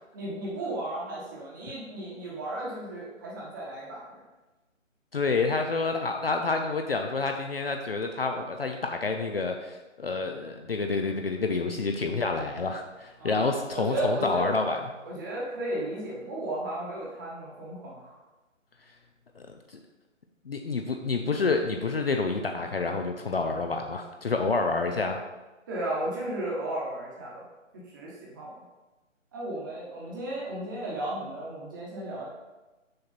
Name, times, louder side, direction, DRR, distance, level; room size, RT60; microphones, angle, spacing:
voice 1, 0.1-4.2 13.2-14.5 15.0-18.1 25.7-27.4 27.9-28.5 29.3-32.3, right 1 dB, 15° right, -5 dB, 1.1 m, -34 dB
voice 2, 5.1-14.9 19.4-19.5 19.7-19.8 20.5-25.2, left 3 dB, 50° left, 4 dB, 0.5 m, -28 dB
6.4 x 4.4 x 4.1 m, 1.1 s
figure-of-eight pair, 155°, 39 cm